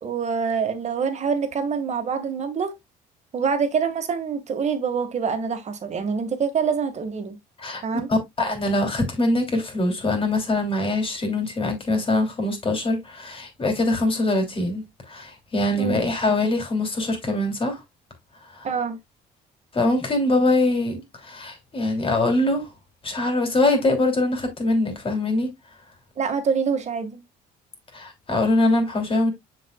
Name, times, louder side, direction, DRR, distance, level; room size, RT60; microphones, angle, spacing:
voice 1, 0.0-2.7 3.3-7.4 7.8-8.1 15.8-16.0 18.6-19.0 26.2-27.2, right 6 dB, 40° right, 1.8 m, -25 dB
voice 2, 8.1-17.8 18.5-18.7 19.7-22.7 23.0-25.5 27.9-29.3, left 2 dB, 30° left, 3.0 m, -23 dB
6.8 x 6.6 x 2.3 m
cardioid pair, 110°, 17 cm